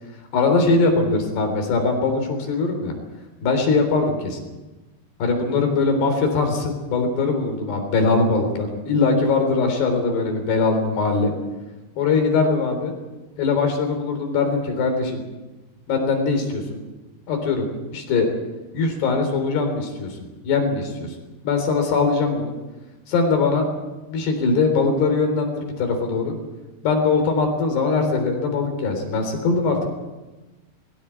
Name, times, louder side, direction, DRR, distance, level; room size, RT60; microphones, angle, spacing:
voice 1, 0.3-3.0 3.4-4.4 5.2-11.3 12.0-12.9 13.4-15.2 15.9-16.8 17.3-18.3 18.7-20.2 20.4-21.1 21.4-22.5 23.1-23.7 24.1-26.4 26.8-29.9, left 4 dB, 75° left, 5 dB, 5.9 m, -21 dB
21.5 x 17.0 x 8.5 m, 1.1 s
omnidirectional pair, 4.8 m